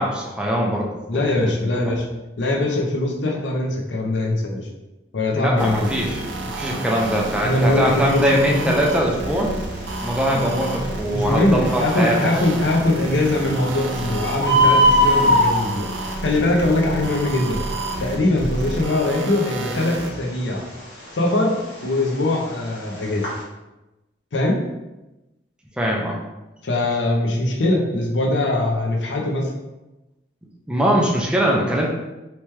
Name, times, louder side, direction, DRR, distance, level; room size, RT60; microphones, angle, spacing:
voice 1, 0.0-1.7 5.3-6.2 6.5-9.5 10.0-12.2 18.1-18.2 25.8-26.2 30.7-31.9, equal, 5° right, -2 dB, 0.4 m, -22 dB
voice 2, 1.1-2.1 2.4-4.7 5.1-5.9 7.4-8.4 8.6-8.7 11.1-17.6 18.0-20.6 21.1-23.3 24.3-24.6 26.6-29.5, left 2 dB, 75° left, 0 dB, 0.6 m, -21 dB
sound 1, 5.6-20.1, right 2 dB, 80° right, 0.4 m, -30 dB
Bird, 7.0-23.4, equal, 60° left, 1.2 m, -25 dB
2.9 x 2.2 x 3.1 m, 1.0 s
head